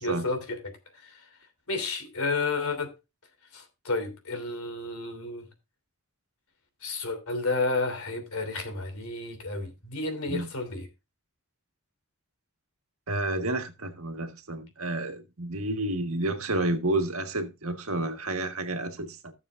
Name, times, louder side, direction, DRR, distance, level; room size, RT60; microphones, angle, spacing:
voice 1, 0.0-1.3 1.7-2.9 3.5-5.5 6.8-10.9, left 3 dB, 80° left, 3.0 m, -31 dB
voice 2, 13.1-19.3, right 2 dB, 80° right, 1.6 m, -30 dB
15.5 x 7.0 x 2.5 m
head